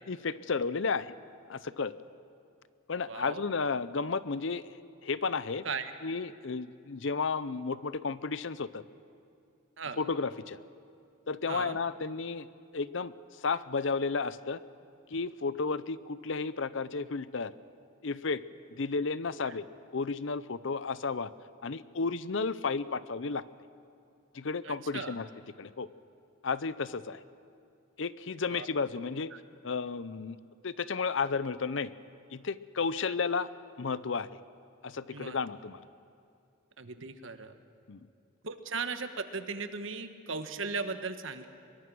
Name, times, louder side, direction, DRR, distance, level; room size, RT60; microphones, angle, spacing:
voice 1, 0.1-1.1 1.5-1.9 2.9-5.6 6.0-8.8 10.0-10.6 11.3-12.5 12.7-14.6 15.1-17.5 18.0-18.4 18.7-19.7 19.9-21.3 21.6-23.4 24.3-25.3 25.6-25.9 26.4-27.2 28.0-29.3 29.6-30.4 30.6-31.9 32.3-33.5 33.8-34.3 34.8-35.8 37.9-38.1, left 4 dB, 65° left, 16 dB, 0.6 m, -33 dB
voice 2, 3.1-3.4 5.6-5.9 9.8-10.0 11.5-11.8 24.6-25.1 28.5-28.7 29.3-29.4 35.1-35.4 36.8-37.5 38.4-41.5, right 4 dB, 70° right, 9 dB, 1.3 m, -37 dB
23.5 x 22.5 x 6.3 m, 2.5 s
head